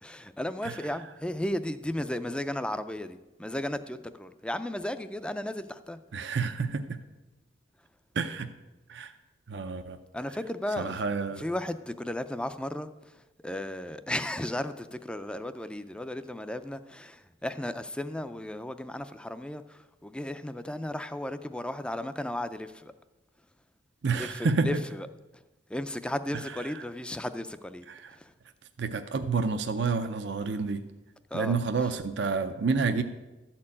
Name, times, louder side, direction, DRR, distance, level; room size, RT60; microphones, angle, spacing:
voice 1, 0.0-6.0 10.1-10.9 11.4-22.9 24.1-25.1 25.7-27.9 28.1-28.3 31.3-31.6, left 1 dB, 5° left, 0.4 m, -35 dB
voice 2, 6.1-7.0 8.1-8.5 8.9-9.1 9.5-10.0 10.8-11.4 24.0-24.8 26.7-26.8 27.9-28.1 28.8-30.9 31.3-33.0, right 4 dB, 65° right, 0.6 m, -29 dB
13.0 x 4.5 x 8.5 m
head